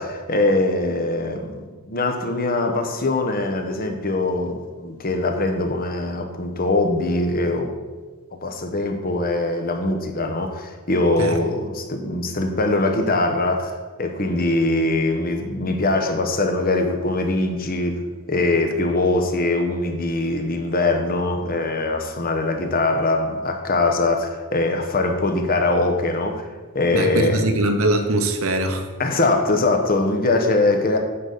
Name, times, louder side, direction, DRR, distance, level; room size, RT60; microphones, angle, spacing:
voice 1, 0.0-7.7 8.3-18.0 18.3-26.5 26.7-27.5 29.0-31.0, left 2 dB, 40° left, 4 dB, 1.0 m, -22 dB
voice 2, 26.9-28.8, right 1 dB, 65° right, 6 dB, 0.9 m, -21 dB
9.7 x 4.0 x 6.5 m, 1.3 s
head